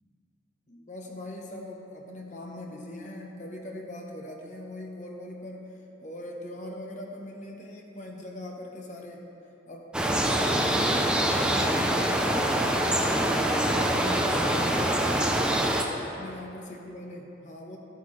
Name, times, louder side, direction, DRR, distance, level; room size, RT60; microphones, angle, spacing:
voice 1, 0.7-5.7 6.0-9.2 9.7-12.9 13.3-15.6 16.0-17.8, left 1 dB, 40° left, 1 dB, 0.9 m, -41 dB
sound 1, 9.9-15.8, right 1 dB, 5° right, 0.5 m, -24 dB
13.5 x 8.1 x 3.2 m, 3.0 s
head